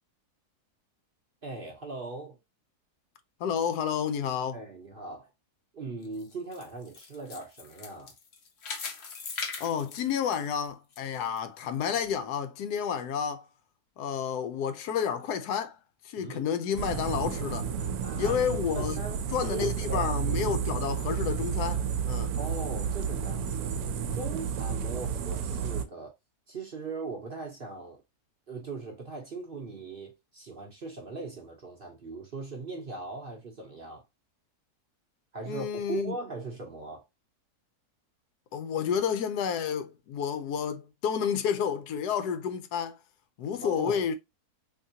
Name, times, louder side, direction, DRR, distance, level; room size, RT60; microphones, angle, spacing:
voice 1, 1.4-2.4 4.5-5.3 5.7-8.1 16.2-16.5 18.0-18.4 18.7-20.6 22.4-23.7 24.1-26.1 26.5-28.0 28.5-34.0 35.3-37.0 43.6-44.0, right 3 dB, 45° right, 0.7 m, -39 dB
voice 2, 3.4-4.6 9.6-13.5 14.0-15.8 16.0-17.7 18.2-19.0 19.3-22.4 35.5-36.1 38.5-43.0 43.4-44.2, left 7 dB, 80° left, 1.1 m, -30 dB
sound 1, 6.0-11.0 11.4-11.5 12.1-12.2, left 5 dB, 50° left, 0.8 m, -40 dB
sound 2, 16.8-25.8, right 7 dB, 80° right, 1.1 m, -31 dB
3.7 x 2.9 x 2.7 m
omnidirectional pair, 1.7 m